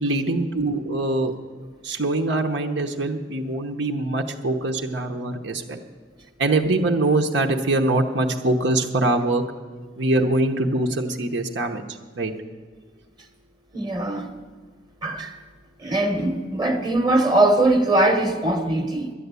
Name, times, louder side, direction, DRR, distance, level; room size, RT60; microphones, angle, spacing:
voice 1, 0.0-1.3 1.8-5.8 6.4-9.4 10.0-11.8 12.2-12.3, right 2 dB, 75° right, 2 dB, 0.9 m, -23 dB
voice 2, 13.7-14.4 15.0-15.4 15.8-19.1, right 2 dB, 25° right, 5 dB, 1.0 m, -21 dB
11.0 x 9.9 x 8.2 m, 1.5 s
head